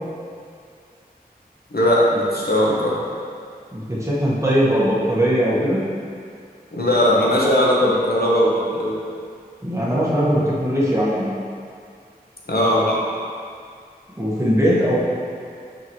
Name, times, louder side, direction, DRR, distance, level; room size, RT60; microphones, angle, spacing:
voice 1, 1.7-2.9 6.7-9.0 12.5-13.0, equal, 75° left, -5 dB, 1.1 m, -18 dB
voice 2, 3.7-5.8 9.6-11.3 14.2-15.0, equal, 20° right, -7 dB, 1.5 m, -20 dB
9.0 x 3.8 x 3.2 m, 2.3 s
wide cardioid pair, 40°, 16 cm